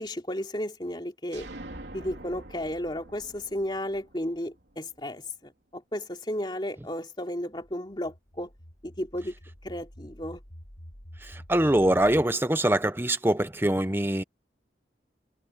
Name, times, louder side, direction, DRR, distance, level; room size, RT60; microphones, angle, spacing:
voice 1, 0.0-1.5 1.9-8.5 8.8-9.3 9.6-10.4, left 1 dB, 25° left, 2.9 m, -33 dB
sound 1, 1.3-5.0, right 1 dB, 75° right, 3.7 m, -45 dB
sound 2, 7.5-12.3, equal, 60° left, 6.6 m, -47 dB
voice 2, 11.2-14.2, right 1 dB, 10° right, 0.7 m, -24 dB
head